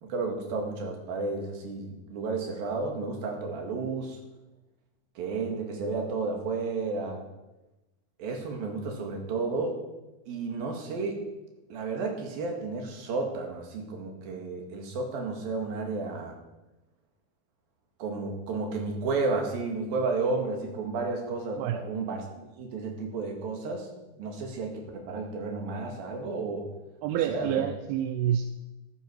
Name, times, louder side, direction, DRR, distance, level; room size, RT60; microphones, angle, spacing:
voice 1, 0.0-4.2 5.2-7.2 8.2-9.8 10.3-11.2 11.7-16.4 18.0-22.3 22.6-23.9 24.2-26.7 27.1-27.6, right 3 dB, 70° right, 2 dB, 3.8 m, -32 dB
voice 2, 27.0-28.5, right 10 dB, 85° right, 7 dB, 2.6 m, -28 dB
13.5 x 12.0 x 4.6 m, 1.0 s
omnidirectional pair, 4.5 m